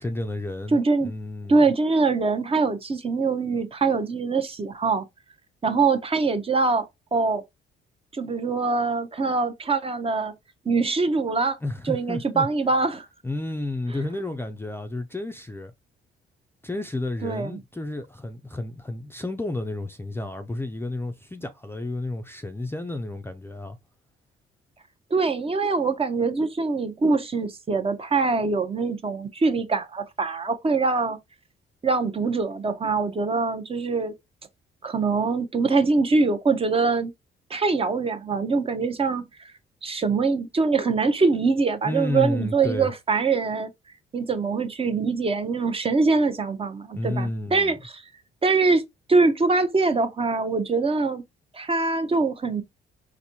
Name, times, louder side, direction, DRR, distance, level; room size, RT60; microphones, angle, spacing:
voice 1, 0.0-1.7 11.6-12.5 13.2-15.7 16.6-23.8 41.8-42.9 46.9-47.8, left 2 dB, 10° left, 0.4 m, -31 dB
voice 2, 0.7-1.1 1.5-5.1 5.6-7.4 8.1-10.3 10.7-11.6 11.9-13.1 17.2-17.6 25.1-31.2 31.8-34.1 34.8-37.1 37.5-39.5 39.8-43.7 44.1-48.0 48.4-48.8 49.1-51.2 51.5-52.6, right 4 dB, 30° right, 0.6 m, -23 dB
4.1 x 2.6 x 2.7 m
cardioid pair, 90°, 20 cm